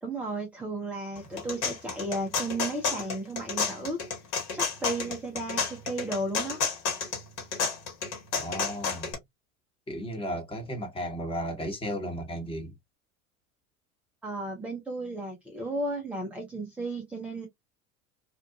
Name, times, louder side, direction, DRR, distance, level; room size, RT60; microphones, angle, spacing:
voice 1, 0.0-4.0 4.5-6.6 14.2-17.5, right 2 dB, 5° right, 0.3 m, -34 dB
sound 1, 1.2-9.1, left 5 dB, 45° left, 1.3 m, -31 dB
voice 2, 8.4-9.2 9.9-12.7, equal, 15° left, 1.0 m, -34 dB
2.8 x 2.2 x 2.3 m
figure-of-eight pair, 80°, 42 cm